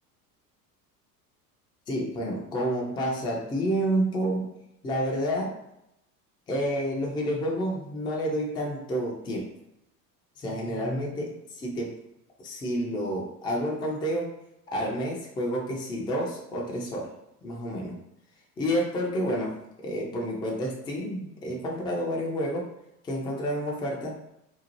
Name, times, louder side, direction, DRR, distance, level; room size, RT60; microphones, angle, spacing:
voice 1, 1.9-4.5 4.8-5.5 6.5-9.5 10.4-11.9 12.4-14.3 14.7-17.1 17.4-18.0 18.6-19.6 19.8-22.7 23.0-24.1, equal, 10° left, -1 dB, 0.4 m, -29 dB
2.6 x 2.0 x 3.0 m, 0.84 s
hypercardioid pair, 75°, 47 cm